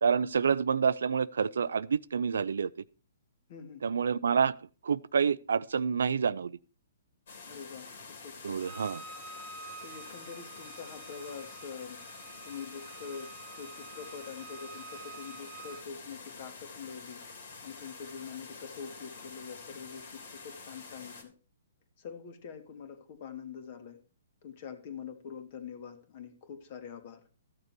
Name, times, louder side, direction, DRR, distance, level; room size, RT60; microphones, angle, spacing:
voice 1, 0.0-2.7 3.8-4.6 4.8-6.6 8.4-9.0, right 6 dB, 80° right, 0.5 m, -28 dB
voice 2, 3.5-3.8 7.5-7.9 8.2-8.6 9.8-12.0 12.4-17.2 17.6-21.3 22.0-24.0 24.4-27.2, left 6 dB, 45° left, 2.1 m, -44 dB
sound 1, 7.3-21.2, left 4 dB, 70° left, 3.1 m, -48 dB
Bowed string instrument, 8.6-15.8, right 5 dB, 15° right, 1.8 m, -49 dB
13.5 x 6.7 x 4.4 m
hypercardioid pair, 145°, 0 cm